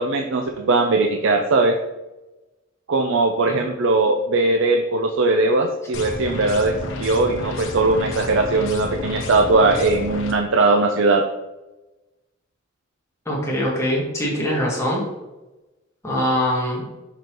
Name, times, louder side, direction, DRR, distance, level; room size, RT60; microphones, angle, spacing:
voice 1, 0.0-1.8 2.9-11.3, right 3 dB, 70° right, 4 dB, 0.5 m, -19 dB
sound 1, 5.9-10.3, left 2 dB, 65° left, 1.0 m, -31 dB
voice 2, 13.2-15.0 16.0-16.9, equal, 15° left, -4 dB, 1.5 m, -23 dB
6.2 x 5.2 x 3.0 m, 1.0 s
head